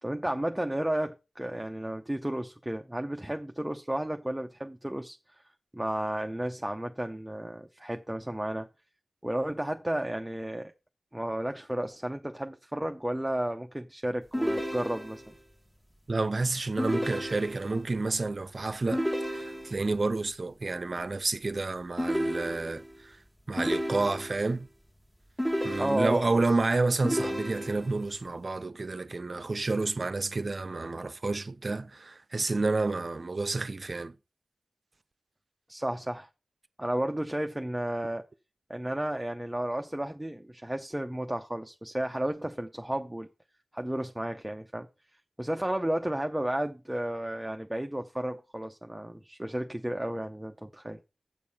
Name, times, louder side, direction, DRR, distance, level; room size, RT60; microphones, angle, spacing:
voice 1, 0.0-5.4 5.7-8.7 9.2-10.7 11.1-15.3 25.8-26.3 35.7-36.3 36.8-38.2 38.7-43.3 43.7-44.9 45.4-51.0, right 1 dB, 10° right, 0.8 m, -32 dB
sound 1, 14.3-15.4 16.8-17.8 18.9-20.0 22.0-23.0 23.6-24.5 25.4-26.4 27.0-28.1, equal, 5° left, 1.4 m, -32 dB
voice 2, 16.1-23.2 23.5-24.7 25.6-34.1, right 3 dB, 40° right, 0.7 m, -30 dB
8.3 x 6.8 x 5.6 m
wide cardioid pair, 100°, 0 cm